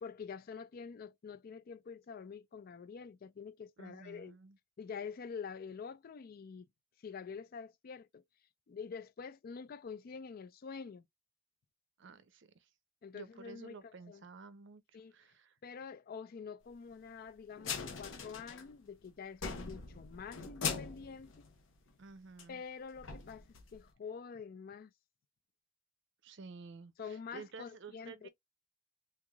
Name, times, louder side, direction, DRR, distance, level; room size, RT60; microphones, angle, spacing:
voice 1, 0.0-4.4 4.8-6.7 7.0-8.2 8.7-11.1 13.0-14.2 14.9-15.1 15.6-21.5 22.5-24.9 27.0-28.3, left 6 dB, 50° left, 0.4 m, -47 dB
voice 2, 3.8-4.6 12.0-12.7 13.1-14.8 15.1-15.6 22.0-22.6 26.2-28.3, right 4 dB, 70° right, 0.6 m, -52 dB
sound 1, 17.6-19.0 19.3-22.1 22.4-22.5 22.9-23.9, left 5 dB, 90° left, 0.8 m, -41 dB
3.4 x 3.3 x 2.3 m
head